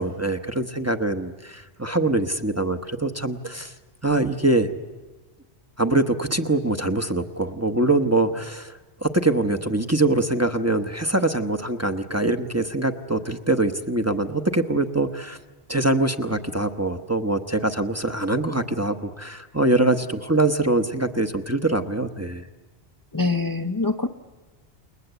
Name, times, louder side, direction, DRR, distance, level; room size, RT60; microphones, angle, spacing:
voice 1, 0.0-3.7 4.0-4.7 5.8-15.4 15.7-22.4, right 2 dB, 15° right, 6 dB, 0.9 m, -23 dB
voice 2, 23.1-24.1, left 3 dB, 20° left, 6 dB, 0.7 m, -24 dB
29.0 x 21.0 x 8.1 m, 1.3 s
omnidirectional pair, 1.1 m